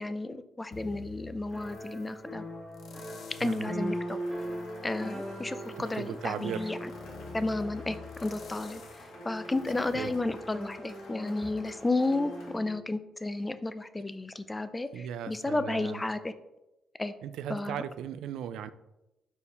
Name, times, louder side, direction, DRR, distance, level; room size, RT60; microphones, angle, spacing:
voice 1, 0.0-2.4 3.4-4.2 4.8-6.9 7.3-16.3 17.0-17.1 17.5-17.8, left 2 dB, 15° left, 11 dB, 0.5 m, -32 dB
sound 1, 0.7-2.1 2.7-3.8 4.3-11.0 11.4-11.5, left 5 dB, 65° left, 0.8 m, -49 dB
sound 2, 1.5-12.8, equal, ahead, 1.4 m, -41 dB
voice 2, 3.4-3.7 5.8-6.7 9.8-10.1 14.9-16.0 17.2-18.7, right 9 dB, 80° right, 13 dB, 0.4 m, -37 dB
Cheering / Applause, 3.8-12.6, left 2 dB, 85° left, 1.7 m, -52 dB
5.3 x 4.5 x 4.1 m, 0.94 s
cardioid pair, 90°, 0 cm